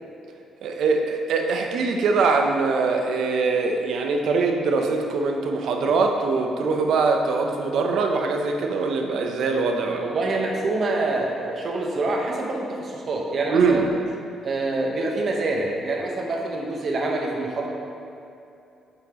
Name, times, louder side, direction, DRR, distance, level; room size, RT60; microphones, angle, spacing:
voice 1, 0.6-10.0 13.5-13.9, right 4 dB, 75° right, 3 dB, 0.7 m, -22 dB
voice 2, 10.0-13.9 14.4-17.7, right 2 dB, 50° right, 0 dB, 1.1 m, -26 dB
8.2 x 5.7 x 3.0 m, 2.7 s
cardioid pair, 90°, 0 cm